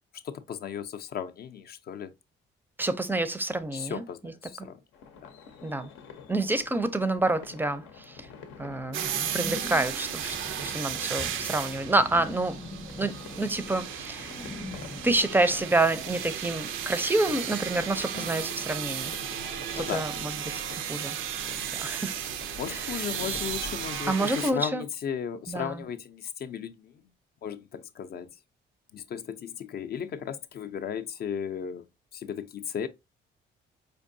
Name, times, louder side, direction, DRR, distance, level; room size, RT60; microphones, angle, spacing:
voice 1, 0.2-2.1 3.7-4.8 5.2-5.3 18.1-18.4 19.8-20.0 22.6-27.0 27.4-28.3 28.9-31.9 32.1-32.9, left 8 dB, 50° left, 0.4 m, -35 dB
voice 2, 2.8-4.7 5.6-5.9 6.3-8.3 8.6-12.6 13.0-14.3 15.0-19.1 19.8-21.2 21.7-22.2 22.7-23.0 24.1-24.8 25.5-25.9, right 2 dB, 10° right, 0.4 m, -28 dB
sound 1, 4.9-24.0, left 5 dB, 90° left, 0.7 m, -47 dB
sound 2, 8.9-24.5, right 9 dB, 85° right, 0.4 m, -35 dB
sound 3, 9.1-15.2, left 2 dB, 30° left, 0.8 m, -42 dB
4.6 x 2.5 x 2.5 m
cardioid pair, 90°, 20 cm